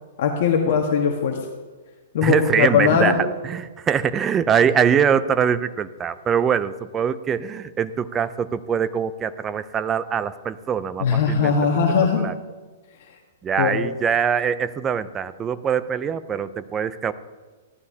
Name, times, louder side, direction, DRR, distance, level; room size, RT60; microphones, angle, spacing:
voice 1, 0.2-1.4 2.1-3.2 11.0-12.3 13.6-13.9, left 6 dB, 55° left, 2 dB, 1.3 m, -20 dB
voice 2, 2.2-11.5 12.2-12.3 13.4-17.1, right 7 dB, 15° right, 13 dB, 0.4 m, -23 dB
16.0 x 11.5 x 2.8 m, 1.3 s
hypercardioid pair, 160°, 0 cm